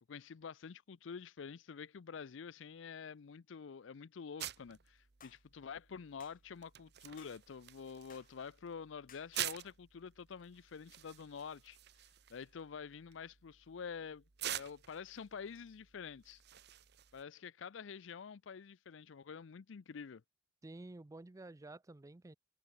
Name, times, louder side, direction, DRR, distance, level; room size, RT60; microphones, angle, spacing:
voice 1, 0.1-11.8 12.3-16.4 17.1-20.2, left 6 dB, 70° left, 0.5 m, -48 dB
sound 1, 4.4-17.2, right 12 dB, 60° right, 1.1 m, -48 dB
sound 2, 5.2-5.4 6.2-6.4 7.2-7.4 8.1-8.3 9.1-9.3, left 8 dB, 45° left, 2.4 m, -60 dB
voice 2, 20.6-22.4, right 2 dB, 15° right, 0.4 m, -51 dB
head